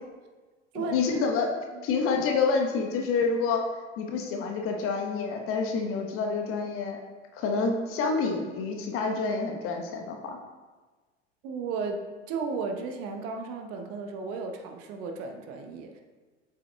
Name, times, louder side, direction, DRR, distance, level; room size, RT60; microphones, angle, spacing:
voice 1, 0.7-1.5 1.8-3.6 4.0-7.0 7.3-10.4, left 4 dB, 40° left, 3 dB, 1.1 m, -28 dB
voice 2, 11.4-16.0, right 4 dB, 45° right, 4 dB, 0.9 m, -34 dB
7.7 x 7.4 x 2.3 m, 1.3 s
figure-of-eight pair, 75°, 34 cm